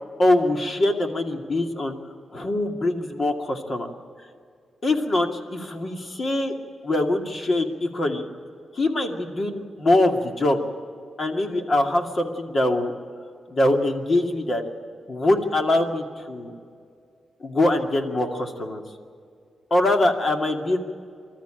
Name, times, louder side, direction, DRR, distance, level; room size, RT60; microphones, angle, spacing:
voice 1, 0.2-1.9 2.3-3.9 4.8-6.5 6.8-8.3 8.7-10.6 11.2-12.9 13.5-14.6 15.1-16.5 17.4-18.8 19.7-20.8, left 1 dB, 40° left, 4 dB, 2.4 m, -23 dB
25.0 x 13.5 x 9.0 m, 2.3 s
cardioid pair, 110°, 0 cm